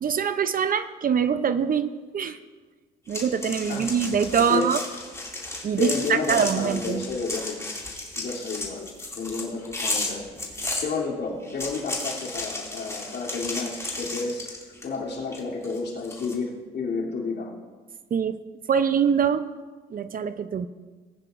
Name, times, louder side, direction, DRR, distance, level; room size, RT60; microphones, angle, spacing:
voice 1, 0.0-2.4 3.1-4.8 5.6-7.1 18.1-18.4 18.7-19.5 19.9-20.7, right 7 dB, 45° right, 12 dB, 0.6 m, -24 dB
sound 1, 3.1-10.9 11.4-15.0 15.3-16.3, left 2 dB, 15° left, 2.4 m, -33 dB
voice 2, 4.3-4.7 5.8-7.6 8.2-10.3 10.8-14.5 14.8-17.6, left 4 dB, 60° left, -3 dB, 3.0 m, -31 dB
19.0 x 9.7 x 2.5 m, 1.4 s
cardioid pair, 90°, 20 cm